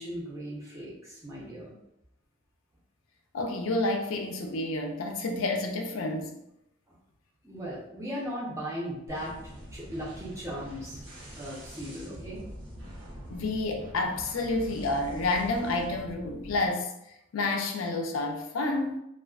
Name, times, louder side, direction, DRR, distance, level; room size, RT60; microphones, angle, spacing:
voice 1, 0.0-1.7 7.4-9.4 9.7-11.0 11.3-12.4, equal, 15° right, -6 dB, 0.7 m, -37 dB
voice 2, 3.3-6.3 13.3-16.9 17.3-19.0, left 2 dB, 90° left, 3 dB, 0.4 m, -29 dB
sound 1, 9.1-16.7, equal, 85° right, 0.7 m, -44 dB
2.4 x 2.2 x 2.3 m, 0.82 s
head